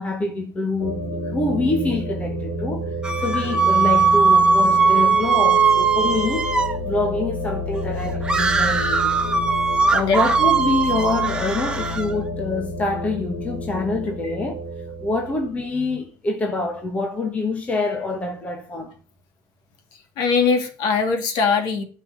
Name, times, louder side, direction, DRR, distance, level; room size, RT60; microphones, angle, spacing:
voice 1, 0.0-2.9 3.2-6.5 6.8-9.1 9.9-14.6 15.0-18.9, left 2 dB, 15° left, 1.4 m, -25 dB
sound 1, 0.8-15.8, left 1 dB, 75° left, 3.7 m, -30 dB
sound 2, 3.0-6.8 8.2-12.1, right 5 dB, 10° right, 1.2 m, -19 dB
voice 2, 20.2-21.8, left 5 dB, 45° left, 2.9 m, -21 dB
11.5 x 5.6 x 8.9 m
cardioid pair, 170°, 10 cm